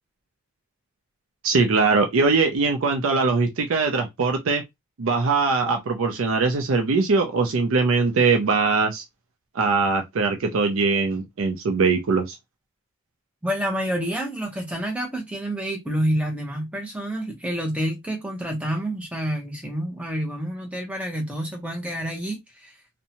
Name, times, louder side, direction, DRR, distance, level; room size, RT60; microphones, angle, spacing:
voice 1, 1.4-4.6 5.0-9.0 9.5-12.4, right 4 dB, 70° right, 0.4 m, -21 dB
voice 2, 13.4-22.7, right 1 dB, 5° right, 0.6 m, -28 dB
2.6 x 2.1 x 2.8 m
head